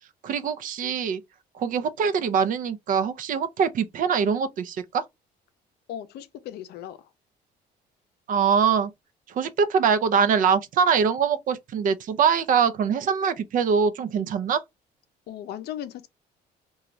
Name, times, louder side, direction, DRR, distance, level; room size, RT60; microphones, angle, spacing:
voice 1, 0.2-1.2 1.5-5.0 8.3-8.9 9.3-14.6, right 6 dB, 55° right, 0.5 m, -23 dB
voice 2, 5.9-7.1 15.3-16.1, left 11 dB, 70° left, 0.5 m, -37 dB
2.5 x 2.3 x 3.0 m
cardioid pair, 110°, 17 cm